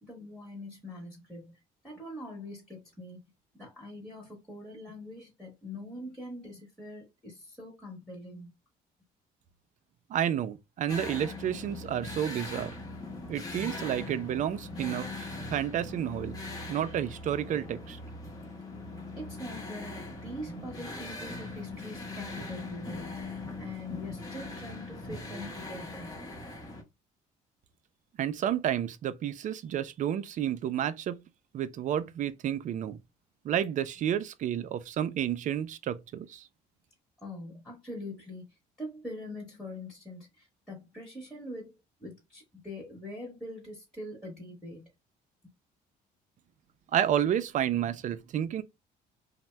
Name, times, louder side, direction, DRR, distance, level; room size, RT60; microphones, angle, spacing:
voice 1, 0.0-1.6 1.8-3.2 3.6-8.5 19.2-23.2 23.6-26.1 37.2-38.4 38.8-41.7 42.0-44.9, left 1 dB, ahead, 1.1 m, -43 dB
voice 2, 10.1-12.7 13.3-16.4 16.7-18.0 28.2-31.2 31.5-33.0 33.4-36.5 46.9-48.6, right 10 dB, 50° right, 0.4 m, -30 dB
sound 1, 10.9-26.8, left 2 dB, 20° left, 0.9 m, -40 dB
2.8 x 2.0 x 3.2 m
cardioid pair, 110°, 17 cm